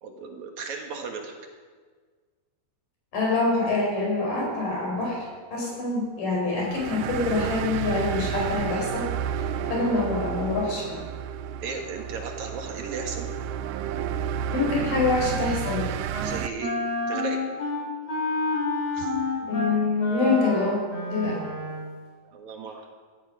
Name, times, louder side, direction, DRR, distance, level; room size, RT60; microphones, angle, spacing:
voice 1, 0.0-1.4 5.7-5.8 11.6-13.3 16.2-16.7 17.1-17.4 18.9-19.1 22.2-22.8, right 4 dB, 65° right, 3 dB, 2.9 m, -35 dB
voice 2, 3.1-5.2 5.5-9.1 9.7-11.0 14.5-15.9 19.4-21.4, left 3 dB, 80° left, -2 dB, 6.3 m, -25 dB
sound 1, 6.6-16.5, right 9 dB, 85° right, 2.2 m, -31 dB
Wind instrument woodwind instrument, 14.7-15.8 16.1-16.3 16.6-21.9, left 2 dB, 50° left, 4.9 m, -30 dB
17.0 x 12.5 x 5.6 m, 1.5 s
omnidirectional pair, 3.8 m